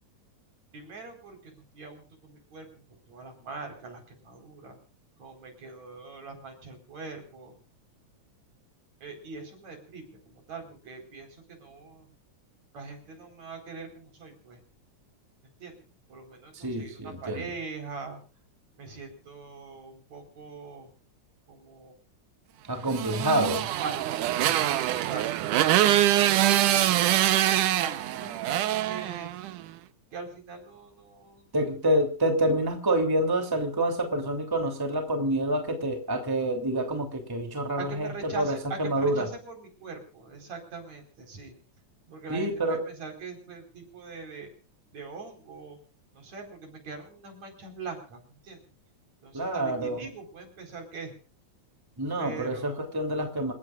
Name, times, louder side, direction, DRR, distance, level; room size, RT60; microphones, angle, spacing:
voice 1, 0.7-4.8 5.2-7.6 9.0-12.1 12.7-14.6 15.4-18.2 18.8-20.9 21.5-21.9 23.8-27.0 27.7-29.3 30.1-31.5 37.8-41.5 42.1-44.5 44.9-45.8 46.1-48.6 49.2-51.1 52.2-52.9, right 4 dB, 60° right, 5 dB, 5.8 m, -42 dB
voice 2, 16.5-17.5 22.7-23.7 31.5-39.3 42.3-42.8 49.3-50.0 52.0-53.5, right 1 dB, 5° right, 4 dB, 2.8 m, -27 dB
Motorcycle, 22.9-29.6, right 13 dB, 80° right, 2.4 m, -24 dB
28.0 x 16.0 x 2.5 m, 0.36 s
omnidirectional pair, 3.6 m